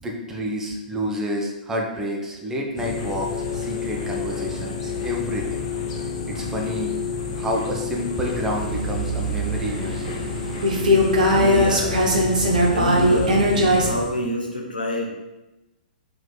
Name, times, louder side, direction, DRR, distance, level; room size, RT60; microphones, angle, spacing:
voice 1, 0.0-5.6 6.3-6.9 7.3-10.3, equal, 10° right, -1 dB, 0.6 m, -29 dB
sound 1, 2.8-14.1, left 5 dB, 45° left, 0.6 m, -30 dB
sound 2, 8.2-13.9, equal, 60° right, 0.8 m, -21 dB
voice 2, 11.3-12.0 12.6-13.4 13.8-15.1, left 1 dB, 80° left, 0 dB, 0.9 m, -27 dB
4.6 x 3.7 x 2.3 m, 1.0 s
figure-of-eight pair, 110°, 5 cm